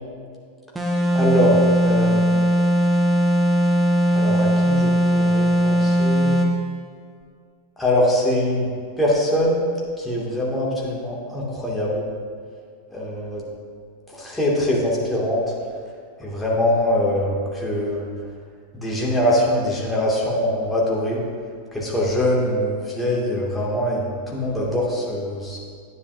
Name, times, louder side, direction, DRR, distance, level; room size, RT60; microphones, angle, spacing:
sound 1, 0.7-6.5, equal, 10° right, 1.2 m, -19 dB
voice 1, 1.1-2.4 4.1-6.5 7.8-12.0 12.9-13.4 14.1-15.4 16.2-18.1 18.7-21.2 21.7-25.6, left 1 dB, 5° left, -5 dB, 2.4 m, -23 dB
10.5 x 9.6 x 2.7 m, 2.2 s
figure-of-eight pair, 90°, 0 cm